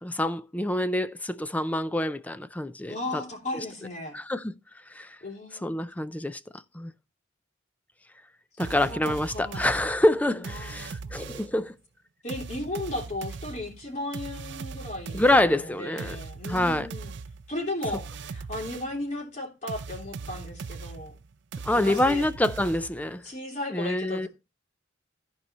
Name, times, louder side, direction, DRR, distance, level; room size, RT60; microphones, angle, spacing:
voice 1, 0.0-3.2 4.1-4.5 4.9-5.2 5.6-6.4 6.7-6.9 8.6-11.7 15.1-16.2 16.5-16.9 21.6-23.2 23.7-24.3, left 1 dB, 10° left, 0.4 m, -26 dB
voice 2, 2.9-4.2 5.2-5.9 8.7-9.8 10.5-11.2 12.2-17.1 17.5-21.2 21.7-22.3 23.2-24.3, left 2 dB, 40° left, 3.2 m, -36 dB
sound 1, 8.6-11.6 12.3-19.0 19.7-23.2, right 4 dB, 65° right, 0.4 m, -39 dB
14.0 x 4.7 x 4.1 m
head